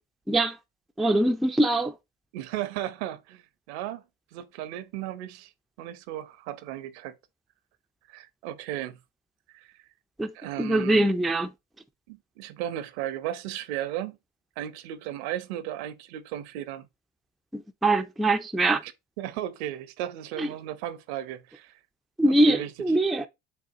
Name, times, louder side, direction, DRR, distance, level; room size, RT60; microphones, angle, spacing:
voice 1, 1.0-1.9 10.2-10.3 10.6-11.5 17.5-18.8 20.4-20.5 22.2-23.3, right 1 dB, ahead, 0.3 m, -23 dB
voice 2, 2.3-3.4 3.7-4.0 4.3-5.5 5.8-7.1 8.1-9.0 9.5-9.7 10.3-11.1 12.1-14.2 14.6-16.9 18.8-18.9 19.2-21.7 22.2-22.7, right 12 dB, 80° right, 0.7 m, -35 dB
6.7 x 2.3 x 2.7 m
hypercardioid pair, 80°, 32 cm